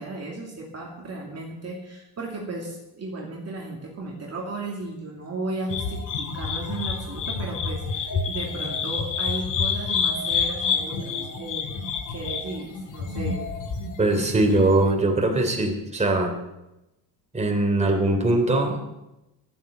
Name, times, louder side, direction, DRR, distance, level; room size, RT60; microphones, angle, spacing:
voice 1, 0.0-11.8 12.1-13.4, right 2 dB, 35° right, -2 dB, 2.7 m, -35 dB
sound 1, 5.7-14.9, left 5 dB, 45° left, 2.1 m, -28 dB
voice 2, 14.0-16.4 17.3-18.8, right 2 dB, 15° right, 2 dB, 3.2 m, -21 dB
12.0 x 9.3 x 8.0 m, 0.95 s
cardioid pair, 105°, 43 cm